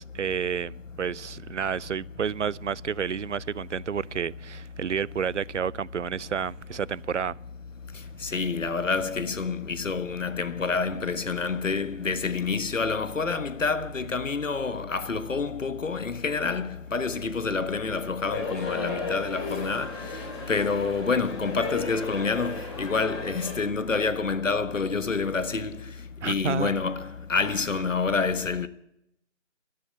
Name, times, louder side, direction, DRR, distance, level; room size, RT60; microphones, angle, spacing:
voice 1, 0.0-7.4 26.2-26.7, right 7 dB, 70° right, 0.6 m, -30 dB
voice 2, 8.2-19.9 20.5-25.7 26.2-28.7, left 4 dB, 85° left, 1.5 m, -28 dB
sound 1, 18.3-23.5, left 3 dB, 20° left, 4.5 m, -35 dB
13.0 x 11.0 x 9.6 m
figure-of-eight pair, 170°, 37 cm